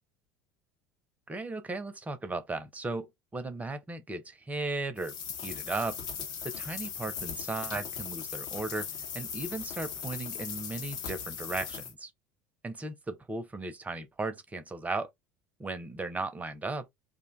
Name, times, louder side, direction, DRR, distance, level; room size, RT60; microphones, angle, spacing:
voice 1, 1.3-5.1 5.4-6.0 6.4-8.9 9.1-12.1 12.6-15.1 15.6-16.9, right 3 dB, 15° right, 0.6 m, -36 dB
sound 1, 5.0-11.9, left 7 dB, 50° left, 0.7 m, -38 dB
2.6 x 2.2 x 3.7 m
figure-of-eight pair, 70°, 9 cm